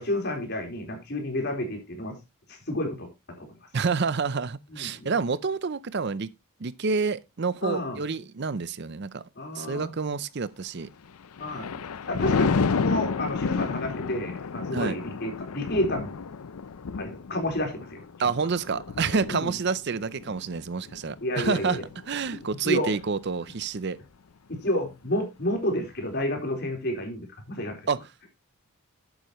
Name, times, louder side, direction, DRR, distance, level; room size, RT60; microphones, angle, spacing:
voice 1, 0.0-2.2 2.5-3.5 4.7-5.1 7.6-8.0 9.4-9.9 11.4-16.2 17.0-18.3 19.3-19.5 21.2-21.8 22.6-22.9 24.5-27.8, left 1 dB, 50° left, 4.2 m, -30 dB
voice 2, 3.7-6.3 6.6-9.2 9.5-10.9 14.7-15.0 18.2-21.8 22.1-24.0 27.9-28.0, right 5 dB, 50° right, 0.5 m, -28 dB
Thunder, 11.1-22.6 23.0-23.3, left 5 dB, 85° left, 0.5 m, -31 dB
11.5 x 8.9 x 3.1 m
head